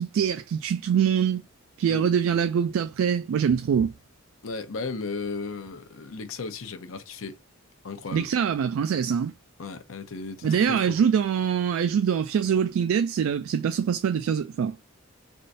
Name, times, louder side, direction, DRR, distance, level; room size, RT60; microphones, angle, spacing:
voice 1, 0.0-1.4 1.8-3.9 8.1-9.3 10.4-14.8, right 7 dB, 85° right, 0.3 m, -24 dB
voice 2, 4.4-7.4 7.8-8.3 9.6-11.1, left 4 dB, 75° left, 0.7 m, -35 dB
3.5 x 2.6 x 2.6 m
head